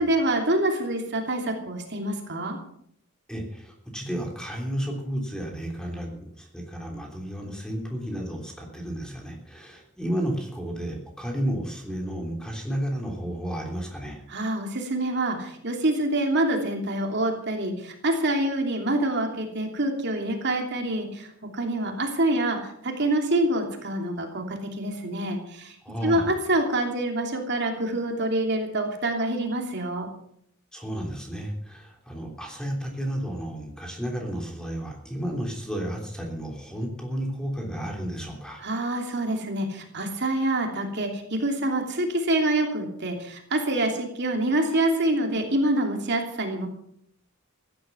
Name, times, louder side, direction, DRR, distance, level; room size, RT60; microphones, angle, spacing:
voice 1, 0.0-2.6 14.3-21.3 21.5-22.6 22.8-25.8 26.0-30.1 38.6-46.7, right 1 dB, 55° right, 3 dB, 2.9 m, -26 dB
voice 2, 3.3-14.2 25.8-26.3 30.7-38.6, equal, 5° left, 1 dB, 3.3 m, -32 dB
15.5 x 11.5 x 6.9 m, 0.69 s
head